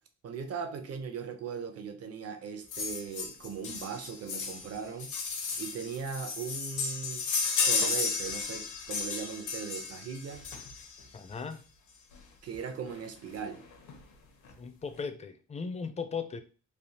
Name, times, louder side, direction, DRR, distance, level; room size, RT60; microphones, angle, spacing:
voice 1, 0.2-5.2 5.6-7.2 7.5-10.4 12.4-13.6, right 6 dB, 55° right, 0.7 m, -39 dB
sound 1, 2.7-11.0 12.1-12.2 12.5-12.6 12.9-13.0 13.4-14.0 14.4-14.5, left 4 dB, 80° left, 0.9 m, -33 dB
voice 2, 11.1-11.6 14.6-16.4, left 5 dB, 25° left, 0.4 m, -37 dB
3.4 x 2.4 x 2.7 m
cardioid pair, 90°, 30 cm